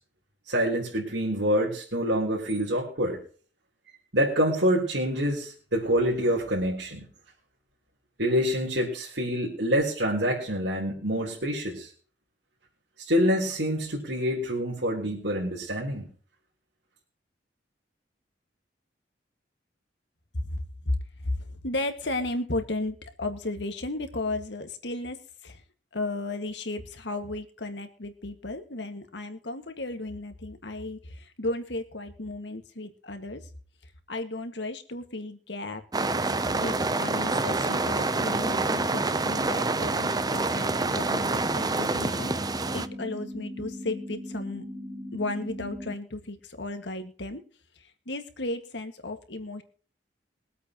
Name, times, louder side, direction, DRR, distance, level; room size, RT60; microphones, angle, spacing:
voice 1, 0.5-3.2 4.1-7.0 8.2-11.9 13.1-16.1, equal, 70° right, -4 dB, 3.7 m, -26 dB
voice 2, 21.2-25.2 25.4-25.6 25.9-33.4 34.1-35.8 36.5-44.7 45.1-47.4 47.8-49.6, left 2 dB, 70° left, 7 dB, 1.9 m, -34 dB
sound 1, 35.9-45.9, left 1 dB, ahead, 2.4 m, -39 dB
sound 2, 35.9-42.9, right 3 dB, 20° right, 0.6 m, -27 dB
22.5 x 8.3 x 3.0 m, 0.43 s
head